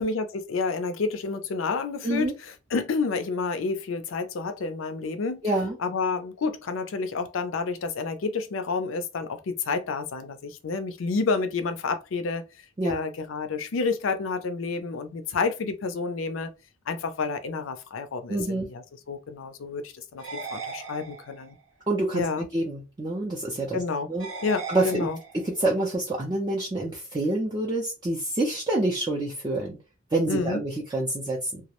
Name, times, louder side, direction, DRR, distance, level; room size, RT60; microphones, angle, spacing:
voice 1, 0.0-5.5 5.8-12.4 12.8-16.5 16.9-21.6 22.1-22.5 23.7-24.1 24.4-25.2 30.3-30.6, left 4 dB, 70° left, 0.4 m, -29 dB
voice 2, 5.4-5.8 12.8-13.0 18.3-18.7 21.9-23.8 24.1-24.3 24.7-25.1 25.4-29.8 30.1-31.6, right 2 dB, 20° right, 0.4 m, -27 dB
sound 1, 20.2-21.6 24.2-25.6, right 5 dB, 65° right, 0.7 m, -38 dB
2.3 x 2.0 x 2.9 m
head